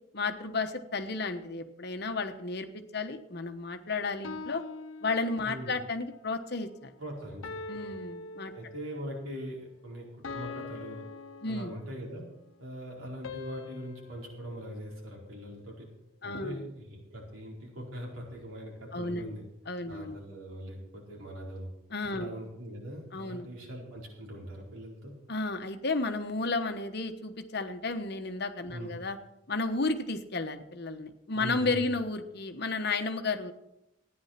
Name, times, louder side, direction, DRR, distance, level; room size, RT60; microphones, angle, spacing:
voice 1, 0.1-4.6 5.0-6.9 7.7-8.5 11.4-11.7 16.2-16.6 18.9-19.3 19.7-20.2 21.9-22.3 23.1-23.5 25.3-29.2 29.5-33.5, left 3 dB, 50° left, 7 dB, 1.1 m, -33 dB
sound 1, 4.2-5.8 7.4-9.1 10.2-12.2 13.2-15.6, left 4 dB, 75° left, 0.8 m, -43 dB
voice 2, 5.4-5.8 7.0-7.9 8.5-11.0 11.5-12.3 12.6-15.9 16.2-19.4 19.9-21.7 22.1-25.1 28.7-28.9 31.4-31.9, equal, 85° right, -2 dB, 4.5 m, -41 dB
14.0 x 9.8 x 5.9 m, 0.86 s
head